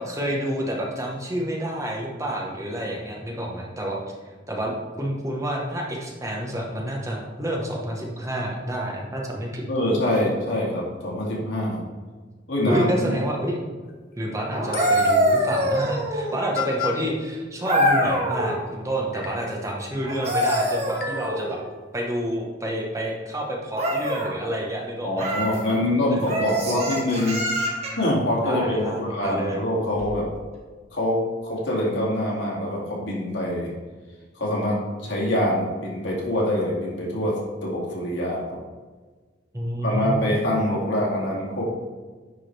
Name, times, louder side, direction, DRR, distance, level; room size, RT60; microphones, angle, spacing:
voice 1, 0.0-4.1 4.5-9.7 12.7-13.5 14.1-21.6 21.9-25.3 26.1-26.2 28.4-29.6 39.5-40.3, right 1 dB, 15° right, -1 dB, 1.1 m, -28 dB
voice 2, 9.7-11.8 12.5-13.1 25.0-27.4 28.0-30.3 30.9-33.7 34.4-38.4 39.8-41.6, left 1 dB, 75° left, -4 dB, 2.4 m, -25 dB
sound 1, 13.9-14.2 14.7-15.3 16.1-16.2 16.5-17.1 18.5-18.6 19.1-19.6 20.9-21.6, left 8 dB, 50° left, 0.8 m, -33 dB
sound 2, 14.5-16.5 17.6-18.6 20.0-21.6 23.7-24.3 25.2-25.6 26.3-28.1 29.9-30.1, equal, 35° right, 1.3 m, -24 dB
10.0 x 4.9 x 3.3 m, 1.4 s
head